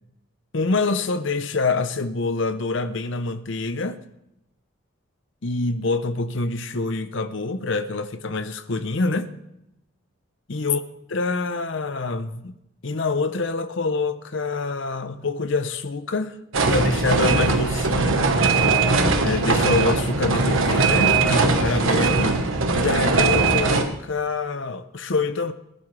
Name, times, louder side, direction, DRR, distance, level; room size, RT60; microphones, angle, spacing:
voice 1, 0.5-4.0 5.4-9.3 10.5-10.8 11.1-12.5 12.8-16.4 16.6-18.2 19.2-22.3 22.7-25.5, left 3 dB, 55° left, 0.7 m, -26 dB
sound 1, 16.5-23.8, right 3 dB, 65° right, 1.3 m, -20 dB
20.0 x 11.0 x 3.3 m
head